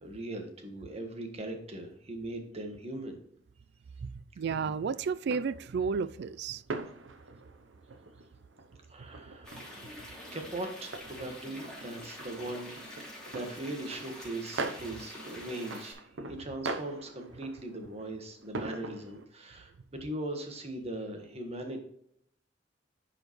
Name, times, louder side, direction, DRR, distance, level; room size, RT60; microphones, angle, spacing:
voice 1, 0.0-3.2 8.9-10.0 10.3-21.8, right 1 dB, 35° right, 1.5 m, -40 dB
voice 2, 4.4-6.6, right 5 dB, 60° right, 0.3 m, -32 dB
sound 1, 4.5-19.3, right 3 dB, 80° right, 0.8 m, -43 dB
sound 2, 9.4-15.9, left 1 dB, 5° left, 2.9 m, -46 dB
10.5 x 4.9 x 3.1 m
head